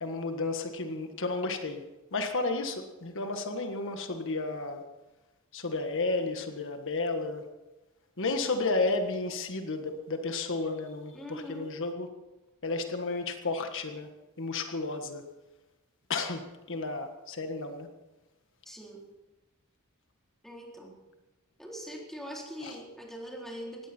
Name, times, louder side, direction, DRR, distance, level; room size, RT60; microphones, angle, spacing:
voice 1, 0.0-1.8 2.1-4.8 5.5-7.4 8.2-12.1 12.6-14.1 14.4-15.2 16.1-16.4 16.7-17.9 22.6-22.7, left 3 dB, 60° left, 6 dB, 1.6 m, -32 dB
voice 2, 11.1-11.7 18.6-19.0 20.4-20.9 21.6-23.9, equal, ahead, -2 dB, 3.9 m, -42 dB
19.5 x 16.0 x 4.5 m, 1.1 s
head